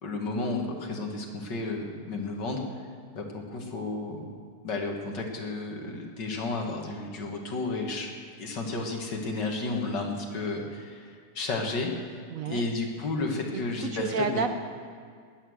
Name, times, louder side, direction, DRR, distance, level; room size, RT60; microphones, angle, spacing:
voice 1, 0.0-2.6 3.1-4.3 4.6-8.1 8.4-12.2 12.5-14.5, left 3 dB, 80° left, 1 dB, 2.5 m, -32 dB
voice 2, 12.3-12.6 13.9-14.5, right 5 dB, 60° right, 7 dB, 1.1 m, -29 dB
20.0 x 9.3 x 6.5 m, 2.1 s
omnidirectional pair, 1.9 m